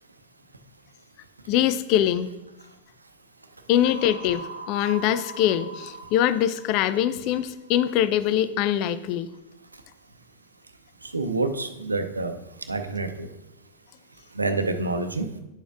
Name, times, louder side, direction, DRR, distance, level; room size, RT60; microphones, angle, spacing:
voice 1, 1.5-2.3 3.7-9.3, left 11 dB, 40° left, 13 dB, 0.4 m, -23 dB
sound 1, 3.9-7.7, right 1 dB, 85° left, 0.7 m, -41 dB
voice 2, 11.1-12.4 12.7-13.3 14.4-15.2, right 3 dB, 80° right, 8 dB, 0.6 m, -27 dB
9.8 x 6.9 x 2.5 m, 0.92 s
figure-of-eight pair, 90°, 0 cm